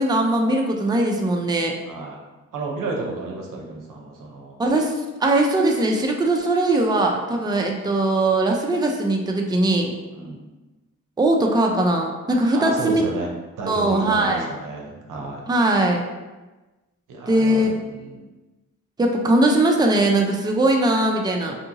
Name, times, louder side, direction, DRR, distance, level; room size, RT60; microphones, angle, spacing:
voice 1, 0.0-1.7 4.6-9.9 11.2-13.0 13.7-14.4 15.5-16.0 17.3-17.8 19.0-21.5, right 1 dB, 15° right, 1 dB, 0.4 m, -20 dB
voice 2, 1.9-2.2 2.5-4.6 10.1-10.4 12.5-15.4 17.1-18.2, right 3 dB, 90° right, -1 dB, 0.6 m, -31 dB
2.7 x 2.5 x 2.8 m, 1.2 s
cardioid pair, 60°, 31 cm